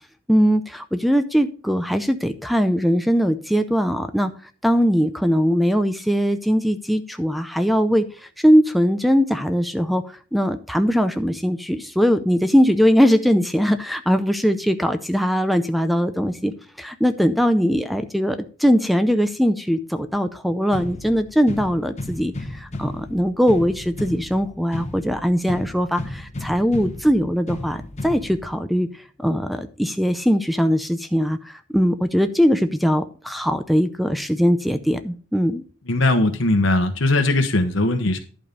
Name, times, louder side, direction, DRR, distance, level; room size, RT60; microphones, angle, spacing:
voice 1, 0.3-4.3 4.6-8.1 8.4-16.5 16.8-28.9 29.2-35.6, equal, ahead, 9 dB, 0.5 m, -20 dB
sound 1, 20.7-28.7, left 2 dB, 35° left, 0.9 m, -34 dB
voice 2, 35.9-38.2, left 2 dB, 70° left, 5 dB, 1.1 m, -19 dB
11.0 x 5.1 x 5.2 m, 0.40 s
head